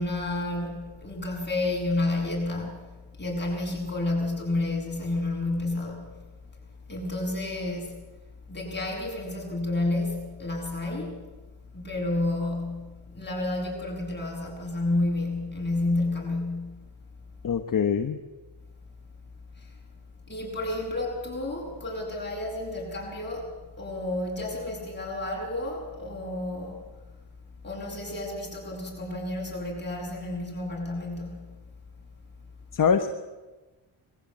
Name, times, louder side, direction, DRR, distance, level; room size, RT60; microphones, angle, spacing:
voice 1, 0.0-6.1 6.9-7.9 8.5-11.2 11.7-16.7 19.5-19.7 20.3-26.8 27.6-31.5, left 2 dB, 20° left, -2 dB, 7.7 m, -30 dB
voice 2, 17.4-18.2 32.7-33.1, left 6 dB, 45° left, 7 dB, 1.2 m, -23 dB
21.0 x 15.0 x 8.7 m, 1.2 s
cardioid pair, 100°, 47 cm